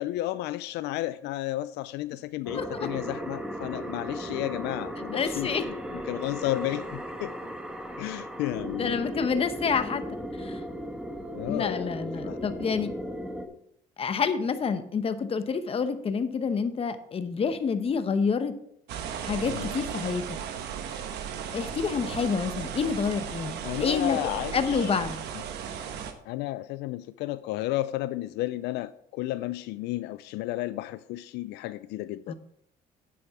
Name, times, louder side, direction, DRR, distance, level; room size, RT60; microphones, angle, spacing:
voice 1, 0.0-7.4 8.0-9.1 11.3-12.4 19.5-19.8 23.6-24.9 25.3-25.4 26.3-32.3, left 16 dB, 85° left, 14 dB, 0.4 m, -33 dB
voice 2, 2.5-2.9 5.1-5.6 8.8-10.0 10.4-10.6 11.5-12.9 14.0-18.5 19.2-20.4 21.5-24.2 24.5-25.2 32.3-32.4, left 5 dB, 35° left, 10 dB, 0.9 m, -28 dB
sound 1, 2.5-13.5, equal, 5° right, 1.2 m, -36 dB
sound 2, 18.9-26.1, right 8 dB, 80° right, 1.1 m, -36 dB
9.6 x 8.6 x 3.6 m, 0.71 s
cardioid pair, 110°, 17 cm